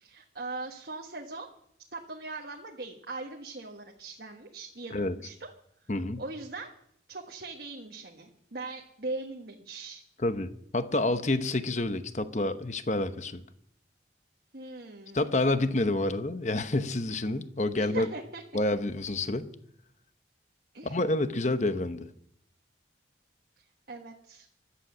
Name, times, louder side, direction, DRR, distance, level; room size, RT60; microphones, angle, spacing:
voice 1, 0.0-1.5 1.9-5.5 6.2-6.7 7.1-10.0 14.5-15.3 17.8-18.4 20.7-21.0 23.9-24.5, right 3 dB, 55° right, 1 dB, 1.4 m, -40 dB
voice 2, 5.9-6.2 10.2-13.4 15.1-18.1 18.5-19.5 20.8-22.1, left 2 dB, 40° left, 10 dB, 0.9 m, -28 dB
16.0 x 11.5 x 6.2 m, 0.69 s
head